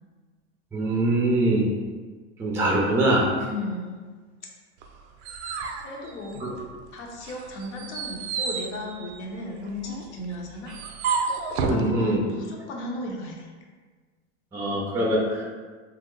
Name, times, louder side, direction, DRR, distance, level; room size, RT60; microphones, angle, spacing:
voice 1, 0.7-1.7 2.4-3.3 6.4-6.5 11.6-12.2 14.5-15.5, right 1 dB, 5° right, -2 dB, 0.4 m, -23 dB
voice 2, 3.4-4.0 5.8-6.5 6.9-10.7 11.1-13.5, left 2 dB, 75° left, 0 dB, 0.8 m, -35 dB
sound 1, 4.8-6.8 7.2-11.9, right 5 dB, 75° right, 0.5 m, -31 dB
2.9 x 2.0 x 3.6 m, 1.5 s
hypercardioid pair, 110°, 35 cm